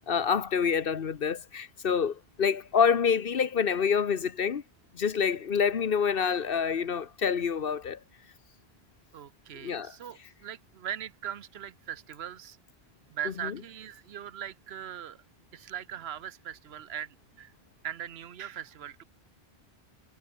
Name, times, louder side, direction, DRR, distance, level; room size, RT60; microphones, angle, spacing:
voice 1, 0.0-4.6 4.9-8.0 9.6-9.9 13.4-13.5, left 6 dB, 60° left, 1.1 m, -27 dB
voice 2, 9.1-12.6 13.1-15.2 15.5-17.5 17.8-19.0, right 9 dB, 70° right, 1.1 m, -40 dB
omnidirectional pair, 1.1 m